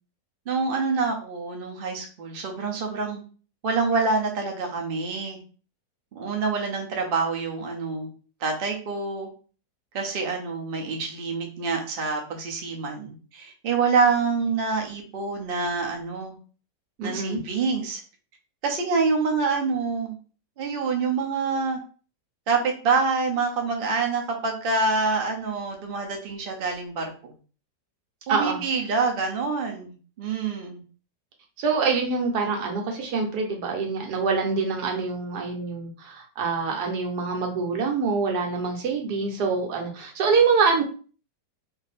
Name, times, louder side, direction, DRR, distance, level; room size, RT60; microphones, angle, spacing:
voice 1, 0.5-3.2 3.6-5.4 6.1-8.1 8.4-9.3 9.9-16.3 17.0-18.0 18.6-20.2 20.6-21.8 22.5-27.3 28.3-30.8, right 4 dB, 50° right, 1 dB, 0.7 m, -26 dB
voice 2, 17.0-17.4 28.3-28.6 31.6-40.8, right 4 dB, 70° right, 2 dB, 1.3 m, -25 dB
2.7 x 2.7 x 4.0 m, 0.39 s
omnidirectional pair, 1.9 m